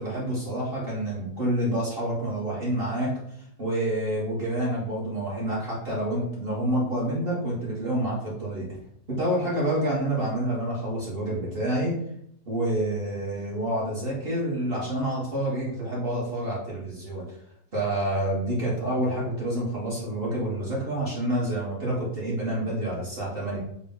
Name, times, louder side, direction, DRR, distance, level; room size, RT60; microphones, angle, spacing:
voice 1, 0.0-3.1 3.6-8.7 9.2-11.9 12.4-17.2 17.7-23.6, right 1 dB, 40° right, -6 dB, 1.1 m, -28 dB
3.9 x 2.3 x 3.6 m, 0.72 s
omnidirectional pair, 1.8 m